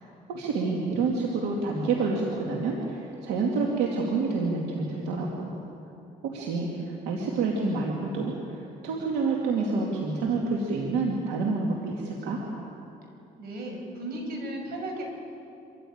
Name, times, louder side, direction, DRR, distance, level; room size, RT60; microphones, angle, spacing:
voice 1, 0.3-5.5 6.2-12.4, right 3 dB, 85° right, -1 dB, 2.7 m, -28 dB
voice 2, 13.4-15.0, right 1 dB, 65° right, 1 dB, 6.3 m, -35 dB
25.5 x 15.0 x 8.9 m, 2.8 s
cardioid pair, 110°, 17 cm